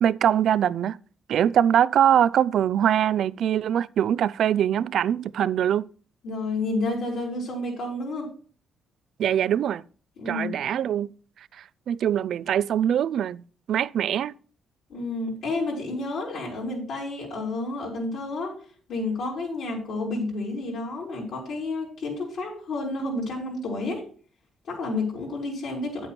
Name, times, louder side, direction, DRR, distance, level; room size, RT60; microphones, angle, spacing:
voice 1, 0.0-1.0 1.3-5.9 9.2-9.8 10.3-11.1 11.9-13.4 13.7-14.3, right 10 dB, 70° right, 0.3 m, -22 dB
voice 2, 6.2-8.3 10.2-10.5 14.9-18.6 18.9-24.1 24.6-26.1, left 2 dB, 70° left, 4.3 m, -30 dB
8.9 x 7.8 x 4.4 m
cardioid pair, 90°, 0 cm